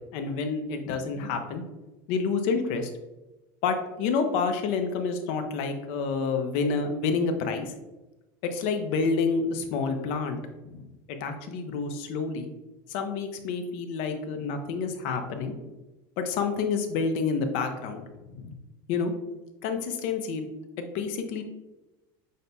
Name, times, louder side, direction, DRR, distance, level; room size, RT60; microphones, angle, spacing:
voice 1, 0.1-1.6 2.1-2.9 3.6-7.7 8.4-12.5 12.9-15.6 16.2-18.5 18.9-19.1 19.6-20.5 20.8-21.4, left 5 dB, 60° left, 6 dB, 0.6 m, -29 dB
6.4 x 2.2 x 2.7 m, 1.0 s
supercardioid pair, 130°, 12 cm